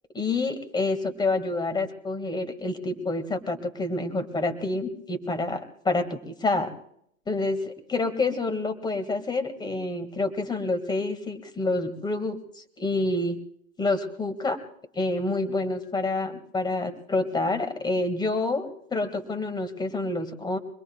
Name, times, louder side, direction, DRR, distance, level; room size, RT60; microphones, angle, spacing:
voice 1, 0.1-6.7 7.3-13.4 13.8-14.6 15.0-20.6, left 2 dB, 10° left, 9 dB, 2.0 m, -28 dB
25.5 x 21.0 x 2.4 m, 0.68 s
hypercardioid pair, 125°, 40 cm